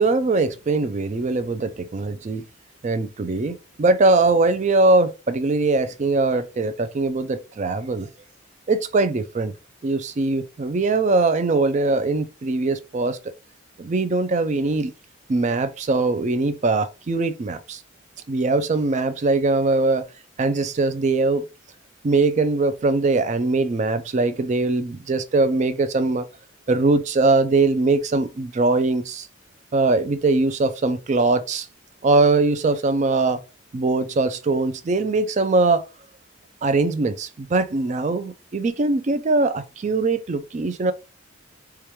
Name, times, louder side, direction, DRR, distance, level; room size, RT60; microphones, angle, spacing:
voice 1, 0.0-2.4 2.8-8.1 8.7-9.5 9.8-13.2 13.8-14.9 15.3-17.8 18.3-20.0 20.4-21.4 22.0-26.2 26.7-29.3 29.7-31.7 32.0-33.4 33.7-35.8 36.6-40.9, right 3 dB, 35° right, 0.4 m, -21 dB
4.7 x 2.3 x 2.9 m
head